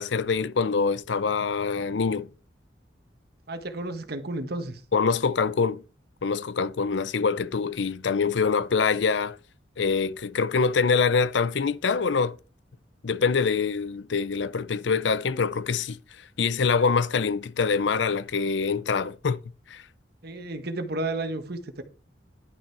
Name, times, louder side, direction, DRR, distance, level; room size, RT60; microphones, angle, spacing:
voice 1, 0.0-2.3 4.9-5.8 6.2-9.4 9.8-12.4 13.0-16.0 16.4-19.4 19.7-19.8, left 5 dB, 75° left, 0.5 m, -25 dB
voice 2, 3.5-4.8 20.2-21.8, right 2 dB, 60° right, 1.4 m, -32 dB
11.5 x 6.0 x 4.8 m
head